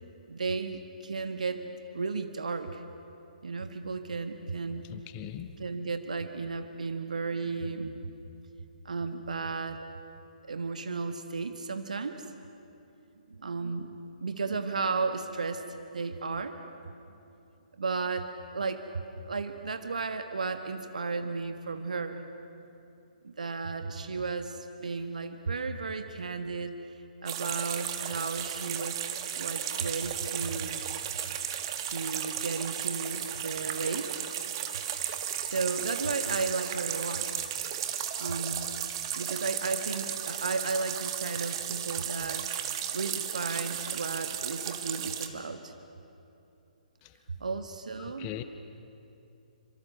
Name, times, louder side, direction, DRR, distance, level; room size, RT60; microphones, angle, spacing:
voice 1, 0.3-1.7 1.9-2.8 3.4-4.8 5.6-8.1 8.8-9.8 10.5-12.2 13.3-15.6 15.9-16.6 17.8-22.2 23.2-26.8 27.2-29.0 29.4-30.8 31.8-34.2 35.4-37.4 38.2-38.7 39.1-42.4 42.9-45.7 47.4-48.3, right 4 dB, 60° right, 7 dB, 1.5 m, -34 dB
voice 2, 4.8-5.6 47.0-47.2 48.0-48.4, left 11 dB, 25° left, 9 dB, 1.0 m, -40 dB
sound 1, 27.3-45.3, right 10 dB, 35° right, 1.8 m, -34 dB
28.0 x 25.5 x 6.8 m, 2.8 s
figure-of-eight pair, 130°, 4 cm